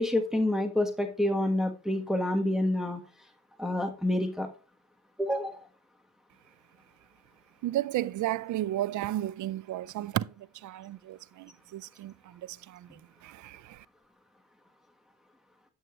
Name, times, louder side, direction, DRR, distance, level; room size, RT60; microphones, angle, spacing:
voice 1, 0.0-3.0 3.6-4.5 5.2-5.6, left 1 dB, ahead, 1.4 m, -28 dB
voice 2, 7.6-13.8, right 14 dB, 70° right, 0.5 m, -34 dB
11.0 x 6.4 x 3.1 m
supercardioid pair, 60°, 31 cm